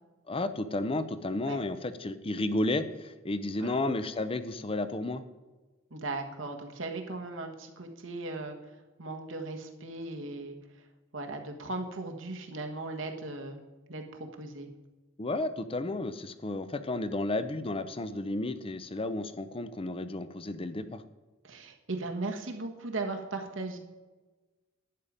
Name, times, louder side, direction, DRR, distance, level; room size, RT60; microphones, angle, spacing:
voice 1, 0.3-5.2 15.2-21.0, left 2 dB, 30° left, 12 dB, 0.7 m, -32 dB
voice 2, 5.9-8.6 9.0-10.6 11.1-13.6 13.9-14.7 21.4-23.8, right 2 dB, 75° right, 3 dB, 1.5 m, -37 dB
11.0 x 8.8 x 5.2 m, 1.2 s
head